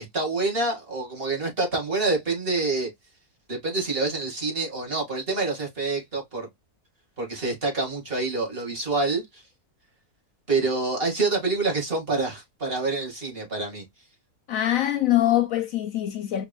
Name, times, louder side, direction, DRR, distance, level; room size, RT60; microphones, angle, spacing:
voice 1, 0.0-2.9 3.5-6.5 7.2-9.4 10.5-13.8, right 3 dB, 40° right, 2.0 m, -27 dB
voice 2, 14.5-16.5, left 13 dB, 70° left, 0.9 m, -23 dB
4.9 x 3.1 x 2.3 m
omnidirectional pair, 1.7 m